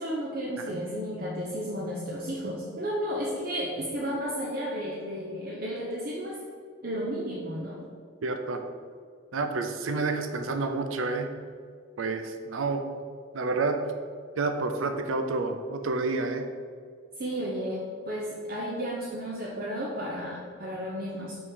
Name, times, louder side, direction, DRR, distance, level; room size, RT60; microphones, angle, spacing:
voice 1, 0.0-6.4 6.8-7.8 17.2-21.4, equal, 45° right, -4 dB, 0.8 m, -33 dB
voice 2, 8.2-8.6 9.3-11.3 12.0-12.8 13.3-13.8 14.4-16.4, right 3 dB, 80° right, 6 dB, 0.5 m, -29 dB
6.1 x 3.7 x 6.1 m, 2.1 s
head